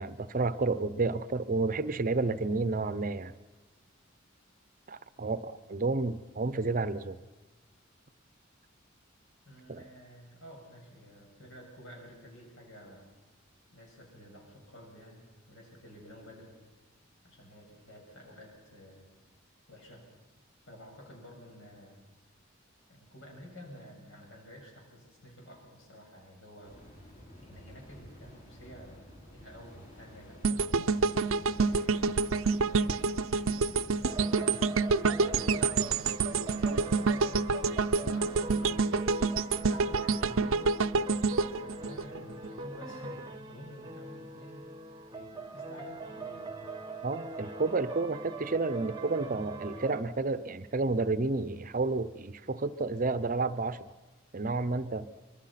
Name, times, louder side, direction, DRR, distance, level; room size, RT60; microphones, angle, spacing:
voice 1, 0.0-3.3 4.9-7.2 9.7-9.8 47.0-53.8 54.3-55.1, right 3 dB, 40° right, 14 dB, 0.7 m, -31 dB
voice 2, 9.5-13.1 13.7-16.5 17.2-19.1 19.7-20.1 20.7-22.0 22.9-26.8 27.4-33.0 33.5-35.1 35.5-38.9 39.4-40.5 41.6-44.7 45.1-46.5, equal, 70° left, 0 dB, 7.1 m, -51 dB
sound 1, 26.6-34.1, equal, 40° left, 5.4 m, -52 dB
sound 2, 30.4-42.6 43.0-43.2, right 4 dB, 80° right, 0.6 m, -28 dB
sound 3, 34.0-50.0, right 3 dB, 20° right, 1.0 m, -42 dB
25.5 x 23.0 x 5.8 m, 1.2 s
head